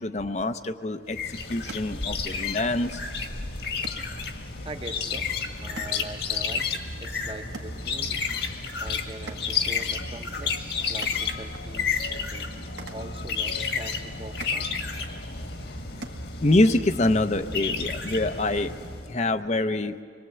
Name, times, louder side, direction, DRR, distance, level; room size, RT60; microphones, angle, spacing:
voice 1, 0.0-3.0 16.4-18.7 19.1-20.0, left 2 dB, 40° left, 9 dB, 0.6 m, -25 dB
sound 1, 0.8-16.8, right 3 dB, 70° right, 1.5 m, -49 dB
sound 2, 1.1-19.1, left 5 dB, 65° left, 1.7 m, -31 dB
voice 2, 4.6-5.3 5.6-8.2 8.8-14.7, right 2 dB, 30° right, 6 dB, 0.9 m, -42 dB
25.5 x 22.5 x 7.9 m, 2.2 s
head